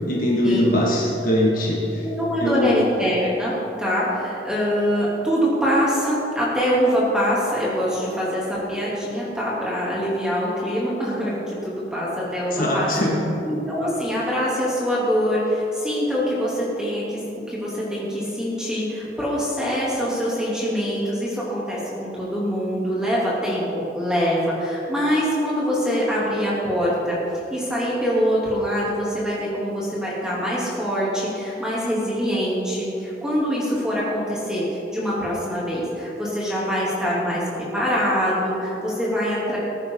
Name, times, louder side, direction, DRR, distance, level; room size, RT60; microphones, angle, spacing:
voice 1, 0.1-2.1 2.4-2.7 12.5-13.3, left 1 dB, 50° left, -4 dB, 2.2 m, -21 dB
voice 2, 2.0-3.5 3.8-12.9 13.5-27.2 27.5-39.6, equal, 5° right, -7 dB, 3.4 m, -24 dB
20.5 x 10.0 x 4.1 m, 2.9 s
head